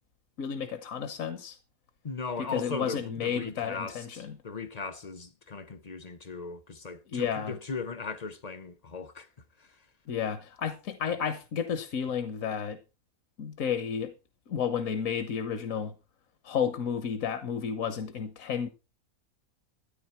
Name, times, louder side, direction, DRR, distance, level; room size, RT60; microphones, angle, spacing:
voice 1, 0.4-1.6 2.4-4.4 7.1-7.6 10.1-12.8 13.4-14.1 14.5-15.9 16.4-18.7, left 7 dB, 65° left, 1.4 m, -32 dB
voice 2, 2.0-9.3 9.6-9.7, left 4 dB, 35° left, 0.7 m, -38 dB
13.5 x 9.3 x 4.4 m
omnidirectional pair, 1.5 m